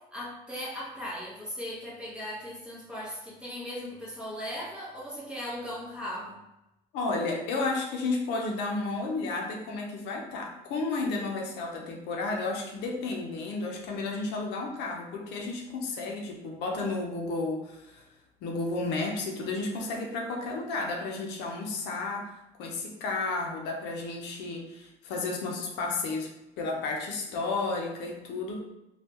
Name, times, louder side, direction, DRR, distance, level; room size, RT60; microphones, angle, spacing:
voice 1, 0.0-6.4, equal, 5° right, -6 dB, 1.2 m, -38 dB
voice 2, 6.9-18.0 18.4-22.3 22.6-26.3 26.6-28.6, left 3 dB, 85° left, 0 dB, 0.7 m, -32 dB
3.5 x 2.4 x 2.9 m, 0.93 s
cardioid pair, 110°, 17 cm